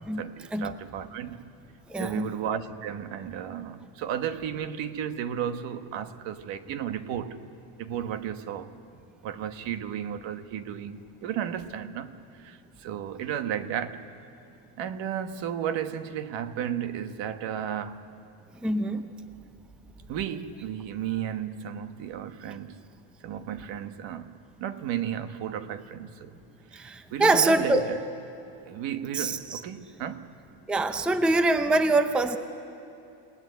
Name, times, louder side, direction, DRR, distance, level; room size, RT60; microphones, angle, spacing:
voice 1, 0.0-1.4 2.0-7.4 7.8-8.7 9.2-14.1 14.8-18.0 20.1-22.9 23.2-26.4 26.7-28.0 28.7-30.3, right 9 dB, 60° right, 1.3 m, -34 dB
voice 2, 1.9-2.3 18.6-19.1 26.7-27.9 29.1-29.6 30.7-32.4, right 2 dB, ahead, 0.6 m, -24 dB
28.5 x 18.5 x 9.5 m
cardioid pair, 155°, 49 cm